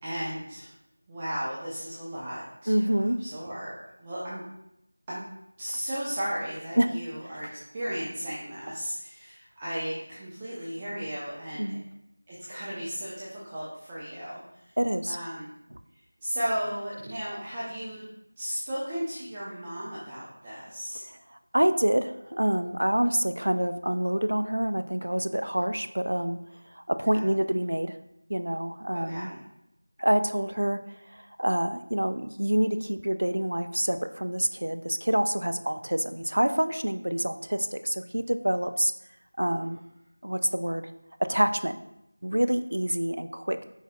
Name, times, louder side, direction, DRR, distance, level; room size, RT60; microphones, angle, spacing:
voice 1, 0.0-0.7 1.1-4.4 5.1-5.2 5.6-7.5 7.7-11.8 12.3-14.8 15.1-15.5 16.2-18.0 18.4-21.0 27.1-27.3 28.9-29.4 39.4-39.6, equal, 15° right, -8 dB, 0.5 m, -35 dB
voice 2, 2.7-3.2 6.8-6.9 11.6-11.8 14.8-15.2 21.5-26.4 26.8-27.9 28.3-29.3 30.0-30.8 31.4-38.9 39.4-39.8 40.2-40.8 41.2-41.8 42.2-43.6, right 1 dB, 75° right, 10 dB, 0.4 m, -26 dB
5.6 x 4.1 x 2.3 m, 0.83 s
figure-of-eight pair, 175°, 0 cm